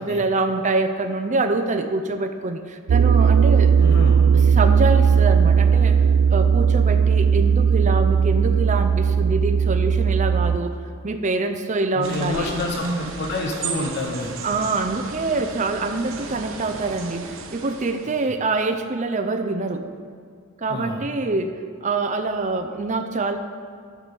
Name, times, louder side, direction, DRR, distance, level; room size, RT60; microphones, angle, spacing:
voice 1, 0.0-3.7 4.5-6.0 6.3-10.8 11.0-13.1 14.4-19.8 20.6-21.5 21.8-23.4, right 3 dB, 35° right, 6 dB, 0.6 m, -25 dB
sound 1, 2.9-10.6, right 6 dB, 80° right, 0.4 m, -17 dB
voice 2, 3.8-4.2 11.9-14.3 18.3-18.4 20.7-21.0, left 1 dB, 50° left, 1 dB, 1.0 m, -28 dB
sound 2, 12.0-18.3, right 4 dB, 65° right, 1.1 m, -35 dB
11.0 x 5.9 x 6.9 m, 2.1 s
head